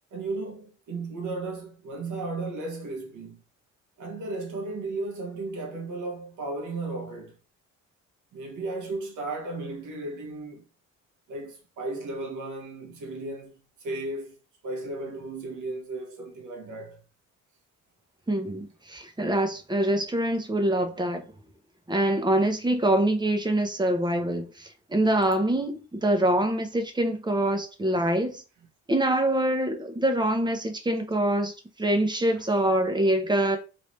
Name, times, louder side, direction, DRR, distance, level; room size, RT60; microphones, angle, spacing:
voice 1, 0.1-3.4 4.0-7.3 8.3-10.6 11.3-14.3 14.6-17.0 32.4-32.6, right 2 dB, 80° right, 1.3 m, -35 dB
voice 2, 18.3-21.2 21.9-28.4 28.9-33.6, right 1 dB, 15° right, 0.9 m, -25 dB
3.3 x 2.8 x 3.2 m
cardioid pair, 90°, 30 cm